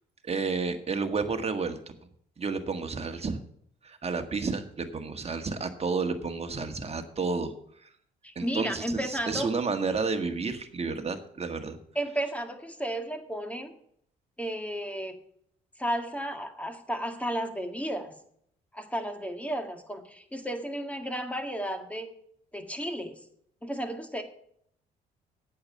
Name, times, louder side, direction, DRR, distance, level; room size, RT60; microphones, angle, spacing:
voice 1, 0.3-1.8 2.4-3.4 3.8-7.5 8.3-11.8, right 4 dB, 35° right, 7 dB, 1.7 m, -31 dB
voice 2, 8.2-9.5 12.0-13.7 14.4-15.1 15.8-18.1 18.7-22.1 22.5-23.2 23.6-24.2, right 1 dB, 5° left, 5 dB, 1.9 m, -33 dB
8.7 x 7.2 x 8.5 m, 0.68 s
supercardioid pair, 65°, 18 cm